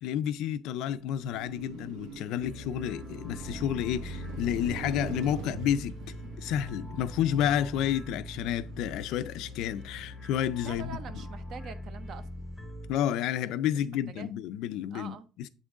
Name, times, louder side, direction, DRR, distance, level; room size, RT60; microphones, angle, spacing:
voice 1, 0.0-5.9 6.4-11.0 12.9-15.5, left 10 dB, 65° left, 0.4 m, -30 dB
Car passing by, 0.9-13.1, right 3 dB, 80° right, 1.5 m, -45 dB
sound 1, 2.4-12.9, left 1 dB, ahead, 0.8 m, -42 dB
voice 2, 10.6-12.3 14.1-14.3 14.9-15.2, right 6 dB, 45° right, 0.6 m, -44 dB
7.7 x 3.7 x 3.6 m
cardioid pair, 165°, 0 cm